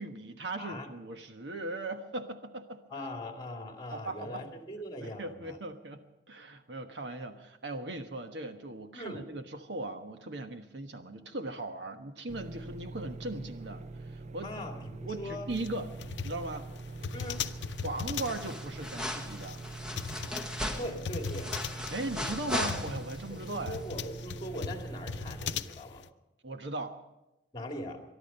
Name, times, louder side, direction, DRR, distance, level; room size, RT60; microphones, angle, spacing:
voice 1, 0.0-2.8 3.9-4.4 5.0-13.8 14.1-14.5 15.0-15.9 16.2-16.7 17.4-17.5 17.8-19.6 21.9-23.8 26.4-27.0, right 2 dB, 85° right, 7 dB, 1.2 m, -38 dB
voice 2, 0.6-0.9 2.9-5.6 8.9-9.2 14.4-15.5 17.1-17.5 20.8-21.5 23.3-26.1 27.5-28.0, left 1 dB, 25° left, 3 dB, 2.3 m, -41 dB
sound 1, 12.3-25.6, right 3 dB, 40° right, 0.5 m, -44 dB
sound 2, 15.5-26.1, left 6 dB, 90° left, 0.6 m, -39 dB
sound 3, 17.2-17.7 18.0-23.3 23.6-23.7, left 1 dB, 5° right, 1.4 m, -38 dB
22.5 x 11.5 x 5.5 m, 0.96 s
head